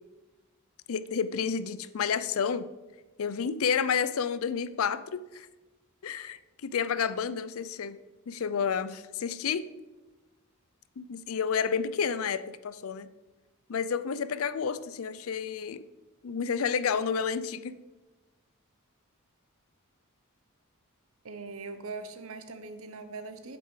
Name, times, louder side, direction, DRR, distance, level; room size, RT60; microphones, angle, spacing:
voice 1, 0.9-2.7 3.2-5.5 6.0-8.0 8.3-9.6 11.0-13.1 13.7-15.9 16.2-17.7, left 6 dB, 70° left, 15 dB, 0.5 m, -30 dB
voice 2, 21.2-23.6, right 3 dB, 70° right, 10 dB, 0.9 m, -41 dB
8.2 x 7.6 x 4.9 m, 1.1 s
head